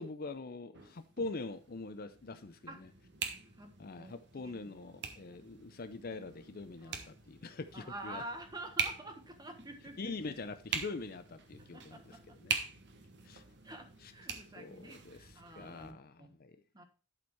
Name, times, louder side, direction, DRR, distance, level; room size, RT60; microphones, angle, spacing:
voice 1, 0.0-2.9 3.8-8.2 10.0-12.5 13.2-13.4 14.0-14.1 14.6-16.6, left 3 dB, 45° left, 0.6 m, -44 dB
sound 1, 0.7-15.9, right 6 dB, 55° right, 1.2 m, -44 dB
voice 2, 4.4-4.8 5.3-5.4 6.8-7.1 7.7-10.1 11.7-12.2 13.6-16.3 16.7-16.8, right 1 dB, 20° right, 1.3 m, -48 dB
11.5 x 4.5 x 4.5 m
head